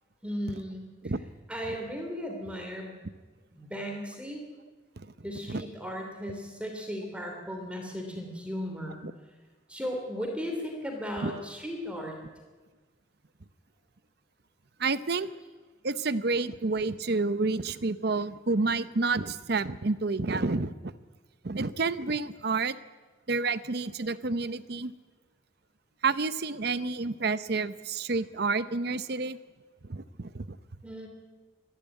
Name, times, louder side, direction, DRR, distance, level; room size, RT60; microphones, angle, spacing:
voice 1, 0.2-1.1 1.5-2.9 3.5-4.4 5.2-9.0 9.7-12.2 30.8-31.1, equal, 5° right, 1 dB, 3.0 m, -36 dB
voice 2, 14.8-15.3 15.8-20.9 21.4-22.8 23.3-24.9 26.0-29.4 29.9-30.6, right 3 dB, 55° right, 14 dB, 0.8 m, -29 dB
26.5 x 11.0 x 9.4 m, 1.3 s
head